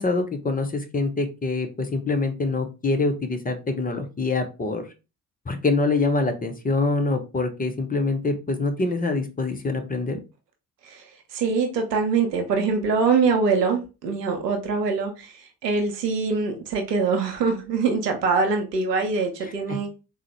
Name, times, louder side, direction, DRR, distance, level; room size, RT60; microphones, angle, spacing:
voice 1, 0.0-4.9 5.5-10.2 19.7-19.8, left 3 dB, 20° left, 0.6 m, -25 dB
voice 2, 10.8-19.9, right 4 dB, 90° right, 0.6 m, -24 dB
3.7 x 2.1 x 2.9 m
figure-of-eight pair, 40°, 47 cm